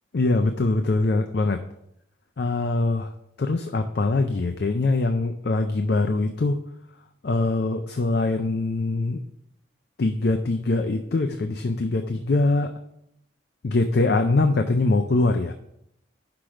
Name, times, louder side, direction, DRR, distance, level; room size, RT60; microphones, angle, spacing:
voice 1, 0.1-1.6 2.4-3.1 3.4-6.6 7.2-9.2 10.0-12.7 13.6-15.5, left 2 dB, 60° left, 7 dB, 0.5 m, -23 dB
5.9 x 4.9 x 5.9 m, 0.77 s
head